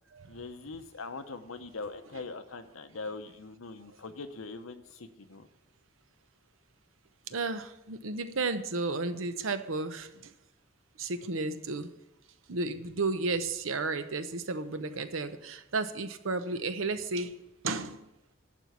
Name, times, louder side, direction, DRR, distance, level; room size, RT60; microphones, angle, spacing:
voice 1, 0.3-5.5, left 3 dB, 85° left, 9 dB, 0.9 m, -42 dB
voice 2, 7.3-10.3 11.0-11.9 12.5-17.3 17.6-18.0, right 3 dB, 80° right, 10 dB, 0.8 m, -33 dB
11.5 x 4.5 x 8.2 m, 0.91 s
head